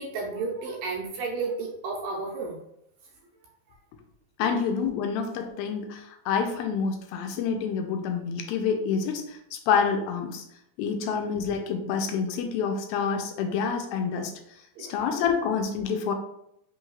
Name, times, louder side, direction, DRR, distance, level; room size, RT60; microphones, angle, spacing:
voice 1, 0.0-2.6 4.4-4.5 14.8-15.0, right 4 dB, 80° right, -2 dB, 2.2 m, -32 dB
voice 2, 4.4-10.4 10.8-14.3 14.8-16.1, left 6 dB, 85° left, 4 dB, 2.4 m, -27 dB
5.6 x 3.1 x 2.3 m, 0.76 s
omnidirectional pair, 4.3 m